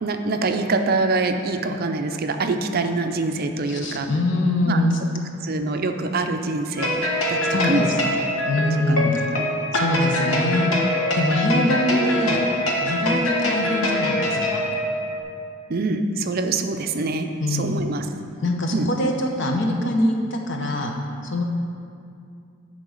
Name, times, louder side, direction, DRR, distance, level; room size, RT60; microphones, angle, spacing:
voice 1, 0.0-4.1 4.7-4.8 5.4-7.0 7.3-7.9 8.9-9.0 9.3-9.5 11.9-12.4 15.7-18.1 18.7-18.9, right 3 dB, 45° right, 6 dB, 0.5 m, -25 dB
voice 2, 3.7-4.9 7.5-8.0 8.5-9.2 9.7-10.7 11.1-12.4 12.8-14.6 17.4-17.8 18.4-20.9 21.2-21.4, left 1 dB, 60° left, 1 dB, 0.9 m, -23 dB
sound 1, 6.8-15.2, left 1 dB, 80° left, 1.2 m, -24 dB
10.5 x 3.8 x 6.3 m, 2.4 s
head